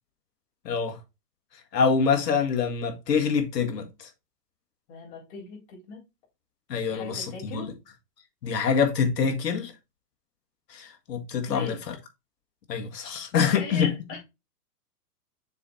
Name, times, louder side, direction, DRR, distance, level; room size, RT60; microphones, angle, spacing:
voice 1, 0.7-1.0 1.7-4.1 6.7-7.7 8.4-9.7 10.7-11.8 12.7-13.9, left 6 dB, 80° left, 1.8 m, -25 dB
voice 2, 4.9-6.1 6.8-7.8 11.5-11.8 13.5-14.2, left 4 dB, 40° left, 4.0 m, -39 dB
6.9 x 4.1 x 3.7 m
hypercardioid pair, 140°, 48 cm